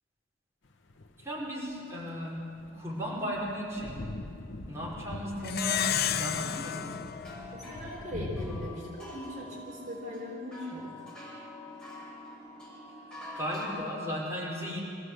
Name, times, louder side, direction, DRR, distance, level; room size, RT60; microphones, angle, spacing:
sound 1, 0.9-1.4 2.3-8.7, left 2 dB, 75° left, 1.0 m, -43 dB
voice 1, 1.2-4.0 4.6-6.9 13.3-14.8, equal, 15° right, -5 dB, 5.0 m, -36 dB
Plucked string instrument, 5.4-8.3, left 9 dB, 55° left, 0.5 m, -32 dB
sound 2, 6.4-13.7, left 1 dB, 5° left, 6.3 m, -46 dB
voice 2, 7.5-11.0, left 1 dB, 45° right, -3 dB, 4.1 m, -40 dB
24.5 x 16.0 x 8.1 m, 2.6 s
head